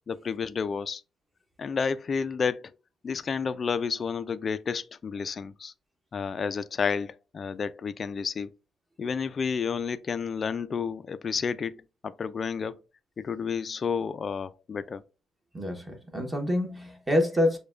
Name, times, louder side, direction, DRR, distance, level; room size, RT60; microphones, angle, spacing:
voice 1, 0.1-1.0 1.6-2.7 3.0-5.7 6.1-8.5 9.0-12.8 13.2-15.0, left 6 dB, 45° left, 0.3 m, -31 dB
voice 2, 15.5-17.6, left 1 dB, 15° right, 1.0 m, -27 dB
6.7 x 2.2 x 2.4 m
cardioid pair, 90°, 0 cm